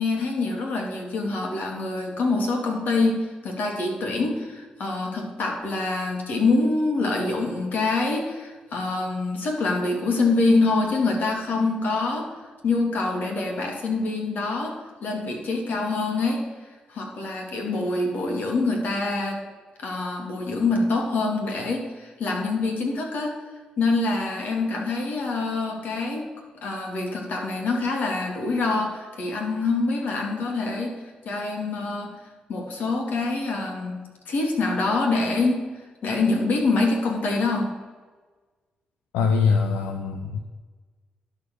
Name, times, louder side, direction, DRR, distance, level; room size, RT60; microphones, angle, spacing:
voice 1, 0.0-12.3 12.6-16.4 16.9-19.4 19.8-23.3 23.8-26.3 26.6-31.0 31.2-32.1 32.5-35.7 36.0-37.7, left 3 dB, 70° left, 1 dB, 2.3 m, -25 dB
voice 2, 39.1-40.4, left 5 dB, 90° left, 5 dB, 0.6 m, -22 dB
11.0 x 4.8 x 6.4 m, 1.4 s
supercardioid pair, 50°, 3 cm